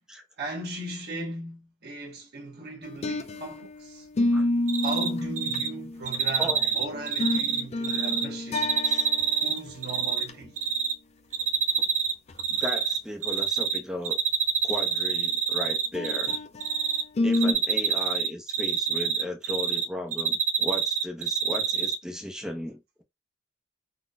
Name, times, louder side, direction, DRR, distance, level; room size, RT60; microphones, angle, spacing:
voice 1, 0.4-4.1 4.8-8.8 9.4-10.6, right 1 dB, 55° right, 1.1 m, -37 dB
sound 1, 2.8-3.7 4.2-6.3 6.9-9.4 9.7-9.8 10.2-10.3 11.8-11.9 12.3-12.4 15.9-16.7 17.2-17.5, left 2 dB, 30° left, 0.4 m, -28 dB
Cricket, 4.7-5.1 5.4-5.7 6.1-8.2 8.5-10.2 10.6-10.9 11.3-12.1 12.4-13.8 14.0-16.4 16.6-17.0 17.3-19.8 20.1-21.9, right 7 dB, 40° right, 0.4 m, -26 dB
voice 2, 6.4-6.7 7.9-8.1 8.8-9.1 12.5-14.2 14.6-16.4 17.2-23.0, left 1 dB, 5° right, 0.7 m, -36 dB
3.9 x 2.2 x 2.5 m
head